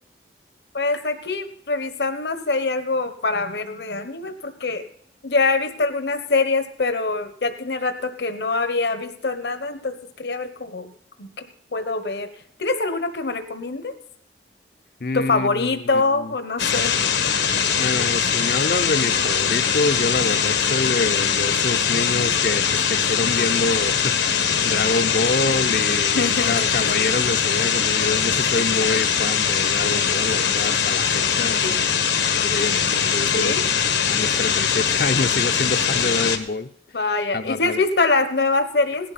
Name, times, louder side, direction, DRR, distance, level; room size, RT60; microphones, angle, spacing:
voice 1, 0.7-4.8 5.2-10.9 11.2-11.3 11.7-12.3 12.6-13.9 15.1-17.0 26.1-27.0 31.6-31.7 33.3-33.6 36.9-39.1, left 3 dB, 75° left, 9 dB, 1.1 m, -24 dB
voice 2, 15.0-16.3 17.8-32.0 32.4-33.5 34.1-36.7 37.3-37.8, left 3 dB, 55° left, 9 dB, 0.6 m, -27 dB
sound 1, 16.6-36.4, left 7 dB, 90° left, 1.5 m, -21 dB
17.5 x 11.5 x 4.1 m, 0.67 s
head